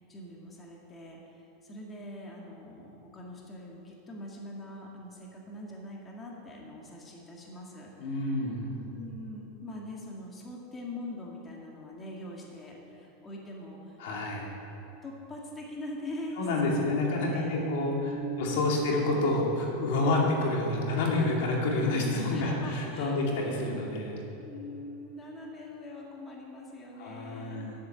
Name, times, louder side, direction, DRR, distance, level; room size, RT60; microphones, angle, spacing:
voice 1, 0.0-8.5 8.8-14.0 15.0-17.7 18.0-18.8 20.0-20.5 22.3-23.2 24.4-27.7, left 1 dB, 20° left, -2 dB, 1.7 m, -42 dB
voice 2, 8.0-8.7 14.0-14.5 16.4-18.0 18.4-24.2 27.0-27.7, left 2 dB, 70° left, -1 dB, 2.4 m, -28 dB
10.5 x 8.2 x 6.9 m, 3.0 s
supercardioid pair, 135°, 0 cm